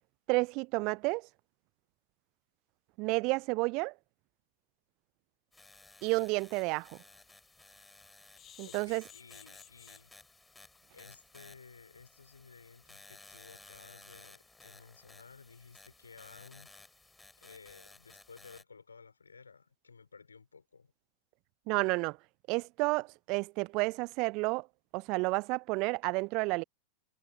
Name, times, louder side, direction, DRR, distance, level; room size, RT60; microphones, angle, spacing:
voice 1, 0.3-1.3 3.0-3.9 6.0-7.0 8.6-9.0 21.7-22.2 22.5-24.7 24.9-26.6, right 27 dB, 40° right, 0.4 m, -31 dB
sound 1, 5.5-18.6, left 2 dB, 10° left, 7.4 m, -57 dB
sound 2, 6.0-6.1 6.6-6.7 7.0-7.2 8.4-10.0 10.6-10.8 11.1-11.2 11.5-11.6, left 10 dB, 30° left, 1.9 m, -55 dB
voice 2, 8.6-10.1 10.9-16.7 17.4-20.9, left 5 dB, 75° left, 5.2 m, -55 dB
figure-of-eight pair, 90°, 0 cm